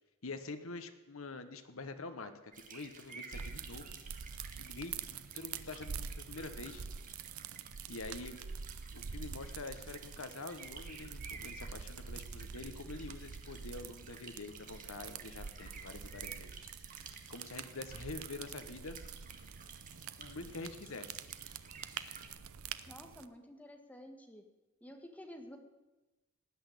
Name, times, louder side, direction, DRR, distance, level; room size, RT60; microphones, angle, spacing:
voice 1, 0.2-4.0 4.6-6.8 7.9-8.4 8.9-16.7 17.3-19.0 20.2-21.2, left 3 dB, 70° left, 8 dB, 1.2 m, -46 dB
sound 1, 2.5-22.3, right 5 dB, 40° right, 1.7 m, -54 dB
sound 2, 3.3-23.2, right 6 dB, 80° right, 0.7 m, -46 dB
voice 2, 22.9-24.4 24.8-25.6, equal, 5° left, 4 dB, 1.7 m, -51 dB
18.5 x 6.3 x 10.0 m, 1.1 s
head